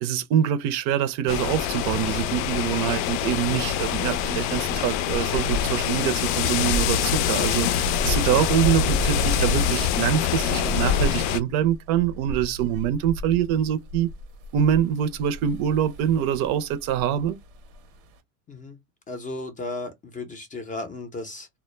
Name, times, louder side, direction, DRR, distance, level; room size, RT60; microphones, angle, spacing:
voice 1, 0.0-14.1 14.5-17.4, right 10 dB, 55° right, 0.6 m, -25 dB
sound 1, 1.3-11.4, left 8 dB, 70° left, 0.5 m, -25 dB
sound 2, 3.1-18.2, right 1 dB, 85° right, 0.8 m, -36 dB
voice 2, 18.5-18.8 19.1-21.5, left 2 dB, 20° left, 0.5 m, -35 dB
2.1 x 2.0 x 3.0 m
supercardioid pair, 125°, 42 cm